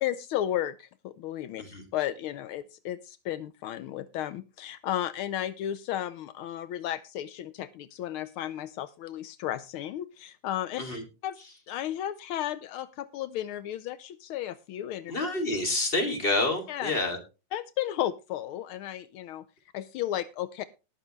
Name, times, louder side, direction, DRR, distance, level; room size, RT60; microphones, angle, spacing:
voice 1, 0.0-1.6 1.9-10.8 11.2-11.4 11.7-15.1 16.7-16.9 17.5-19.4 19.7-20.6, left 12 dB, 80° left, 14 dB, 1.6 m, -33 dB
voice 2, 15.1-17.2, left 2 dB, 25° left, 4 dB, 2.9 m, -28 dB
19.0 x 6.9 x 3.2 m, 0.29 s
omnidirectional pair, 2.3 m